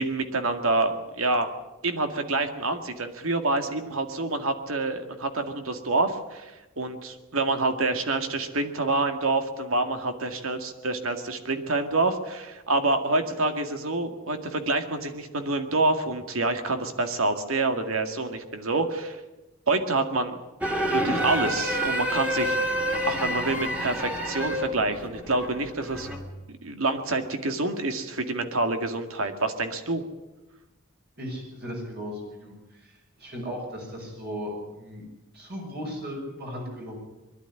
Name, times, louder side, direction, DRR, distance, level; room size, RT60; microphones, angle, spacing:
voice 1, 0.0-1.5 1.8-19.2 19.7-20.4 20.9-22.6 23.0-26.1 26.5-30.0, right 2 dB, 85° right, 7 dB, 2.1 m, -27 dB
sound 1, 20.6-26.3, equal, 5° right, 2.3 m, -28 dB
voice 2, 31.2-35.1 35.3-37.0, equal, 50° right, 0 dB, 6.3 m, -36 dB
22.0 x 12.0 x 9.9 m, 1.1 s
head